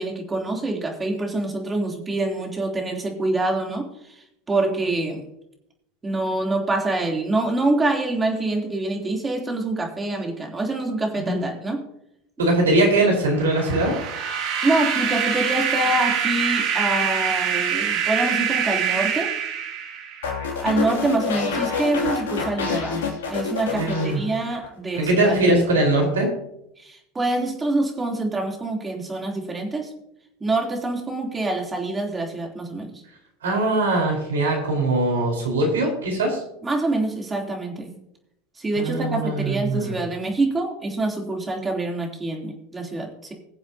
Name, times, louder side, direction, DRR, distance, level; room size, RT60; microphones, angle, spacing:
voice 1, 0.0-5.3 6.0-11.8 14.6-19.3 20.6-25.6 26.8-29.9 30.4-32.9 36.6-38.0 38.6-43.3, right 2 dB, 20° right, 0 dB, 3.2 m, -26 dB
voice 2, 12.4-13.9 23.7-24.2 25.0-26.3 33.4-36.4 38.8-40.0, right 2 dB, 80° right, 1 dB, 4.6 m, -21 dB
sound 1, 13.3-20.3, right 8 dB, 55° right, 2.6 m, -25 dB
sound 2, 20.2-24.7 24.9-25.4, left 5 dB, 75° left, 2.8 m, -28 dB
21.5 x 7.8 x 2.9 m, 0.79 s
hypercardioid pair, 80°, 0 cm